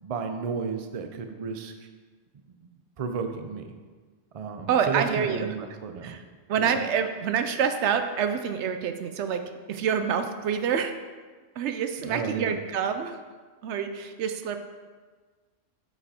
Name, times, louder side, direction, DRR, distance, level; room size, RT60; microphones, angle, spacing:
voice 1, 0.0-1.7 3.0-3.6 4.3-6.2 6.6-6.7 12.0-12.6, right 5 dB, 55° right, 6 dB, 0.4 m, -32 dB
voice 2, 4.7-5.5 6.0-6.2 6.5-9.4 9.7-10.9 11.6-13.2 13.6-14.6, right 7 dB, 70° right, 8 dB, 0.8 m, -27 dB
8.0 x 4.9 x 4.2 m, 1.4 s
omnidirectional pair, 1.3 m